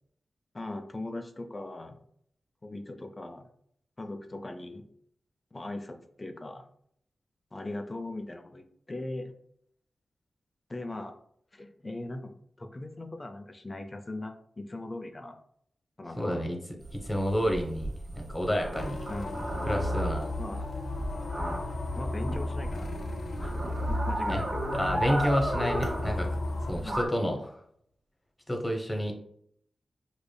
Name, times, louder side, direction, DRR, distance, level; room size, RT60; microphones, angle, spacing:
voice 1, 0.5-2.0 2.6-3.5 4.0-4.8 5.5-6.6 7.5-9.3 10.7-11.2 11.5-15.4 16.0-16.4 19.1-19.5 20.4-20.7 22.0-22.9 23.4-23.5 23.9-24.6 26.6-27.0, left 2 dB, 35° left, 6 dB, 0.5 m, -39 dB
voice 2, 16.2-16.6 16.9-19.1 19.6-20.3 24.3-24.4 24.7-26.4 26.7-27.6 28.5-29.1, equal, 20° left, 2 dB, 0.9 m, -30 dB
sound 1, 16.8-27.1, right 1 dB, 60° right, 1.1 m, -35 dB
sound 2, 18.7-26.7, left 2 dB, 85° left, 0.4 m, -34 dB
5.0 x 2.4 x 2.2 m, 0.68 s
cardioid pair, 45°, 0 cm